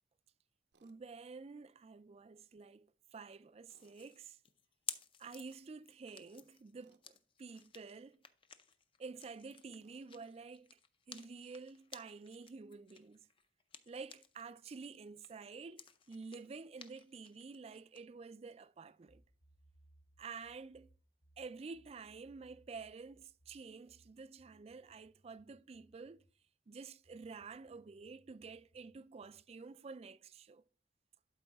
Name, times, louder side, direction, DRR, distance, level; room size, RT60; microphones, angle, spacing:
Tools, 0.7-1.0 3.7-4.0 6.8-7.1 9.8-10.1, right 4 dB, 75° right, 0.7 m, -71 dB
voice 1, 0.8-4.4 5.2-8.2 9.0-10.8 11.1-13.3 13.9-19.2 20.2-20.9 21.4-26.2 26.7-30.6, right 4 dB, 35° right, 0.4 m, -50 dB
sound 1, 3.7-14.5 14.8-18.0, left 7 dB, 30° left, 0.5 m, -54 dB
sound 2, 19.1-26.4 27.0-29.5, right 1 dB, 70° left, 1.9 m, -70 dB
11.5 x 4.6 x 3.5 m
head